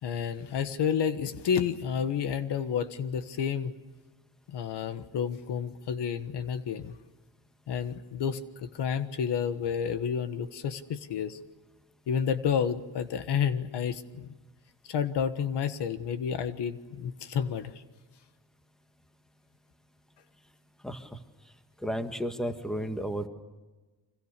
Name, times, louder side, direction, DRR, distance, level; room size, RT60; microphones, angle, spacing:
voice 1, 0.0-3.7 4.5-6.9 7.7-11.4 12.1-14.3 14.8-17.7, left 7 dB, 65° left, 11 dB, 1.5 m, -30 dB
voice 2, 20.8-21.2 21.8-23.3, equal, ahead, 7 dB, 1.7 m, -33 dB
30.0 x 26.0 x 6.7 m, 1.2 s
cardioid pair, 150°, 44 cm